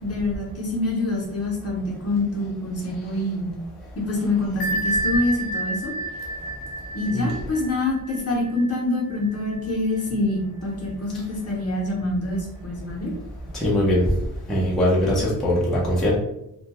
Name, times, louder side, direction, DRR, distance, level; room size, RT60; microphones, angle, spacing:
voice 1, 0.0-3.5 4.0-5.9 6.9-13.1, left 2 dB, 40° left, -3 dB, 0.7 m, -26 dB
Bell, 4.6-10.0, right 2 dB, 85° left, 0.5 m, -30 dB
voice 2, 13.5-14.0 14.5-16.2, left 1 dB, ahead, -6 dB, 0.5 m, -21 dB
2.2 x 2.2 x 2.8 m, 0.83 s
wide cardioid pair, 160°, 36 cm